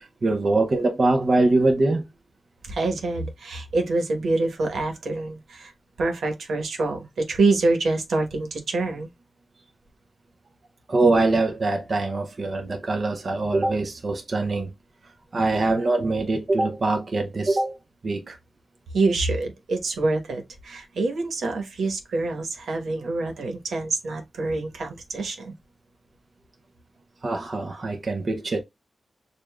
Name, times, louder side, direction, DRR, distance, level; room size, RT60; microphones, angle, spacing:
voice 1, 0.0-2.1 10.9-14.7 15.3-17.8 18.0-18.4 27.2-28.6, right 2 dB, 45° right, 0.7 m, -23 dB
voice 2, 2.7-5.7 6.0-9.1 18.9-25.5, right 3 dB, 90° right, 1.1 m, -26 dB
6.6 x 2.5 x 2.3 m
wide cardioid pair, 135°, 0 cm